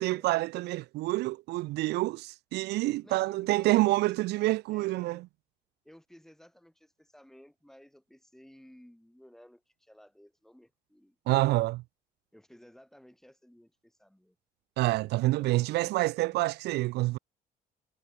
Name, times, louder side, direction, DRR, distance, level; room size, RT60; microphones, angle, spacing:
voice 1, 0.0-5.2 11.3-11.8 14.8-17.2, right 19 dB, 80° right, 0.6 m, -27 dB
voice 2, 3.0-5.2 5.8-11.2 12.3-14.4 15.3-15.9, equal, ahead, 6.8 m, -56 dB
cardioid pair, 110°, 17 cm